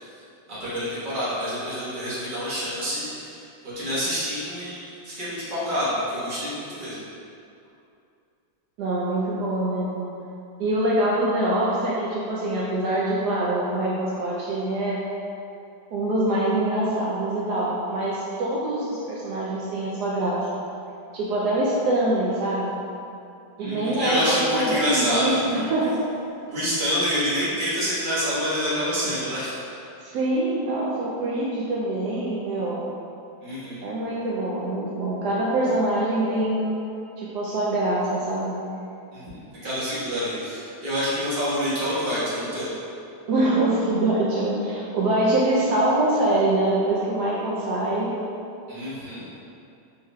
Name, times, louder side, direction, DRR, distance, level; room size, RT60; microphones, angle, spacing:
voice 1, 0.5-3.4 3.7-7.0 23.6-25.7 26.5-29.5 33.4-33.8 39.1-42.7 48.7-49.2, equal, 30° right, -11 dB, 1.2 m, -27 dB
voice 2, 8.8-10.1 10.6-15.0 15.9-20.5 21.1-22.8 23.6-26.0 30.0-32.9 33.8-36.7 37.2-38.6 43.3-48.2, right 1 dB, 80° right, -6 dB, 0.9 m, -24 dB
4.9 x 4.3 x 2.3 m, 2.6 s
omnidirectional pair, 2.3 m